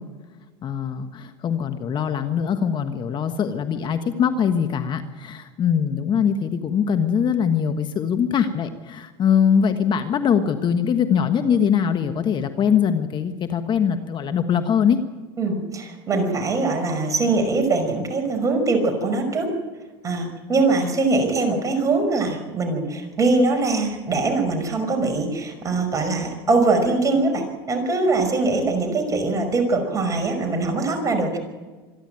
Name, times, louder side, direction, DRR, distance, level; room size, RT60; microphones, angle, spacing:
voice 1, 0.6-15.0, left 7 dB, 35° left, 8 dB, 1.4 m, -22 dB
voice 2, 15.4-19.5 20.0-31.4, right 3 dB, 25° right, 5 dB, 5.6 m, -22 dB
26.0 x 11.5 x 8.9 m, 1.3 s
supercardioid pair, 110°, 13 cm